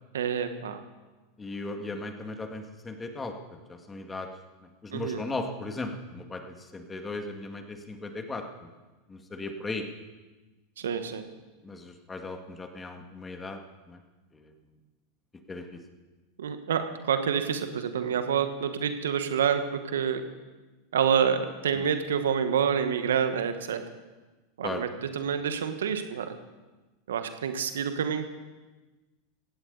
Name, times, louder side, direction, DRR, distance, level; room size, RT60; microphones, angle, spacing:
voice 1, 0.1-0.8 4.9-5.2 10.8-11.2 16.4-20.2 20.9-23.8 24.6-26.3 27.1-28.3, right 7 dB, 80° right, 8 dB, 1.3 m, -28 dB
voice 2, 1.4-4.3 4.8-8.7 9.1-9.8 11.6-13.6 13.9-14.0 14.3-14.5 15.5-15.8 21.8-21.9 24.6-24.8, left 2 dB, 15° left, 5 dB, 2.0 m, -37 dB
16.5 x 16.0 x 4.0 m, 1.2 s
hypercardioid pair, 95°, 0 cm